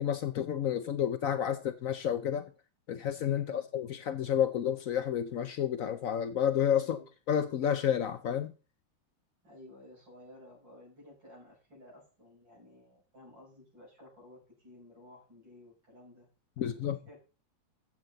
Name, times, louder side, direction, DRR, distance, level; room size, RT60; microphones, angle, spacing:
voice 1, 0.0-2.5 2.9-7.0 7.3-8.5 16.6-17.0, left 9 dB, 65° left, 0.8 m, -30 dB
voice 2, 9.4-16.3 16.7-17.2, left 1 dB, 90° right, 7.0 m, -55 dB
13.5 x 7.6 x 3.9 m
omnidirectional pair, 2.0 m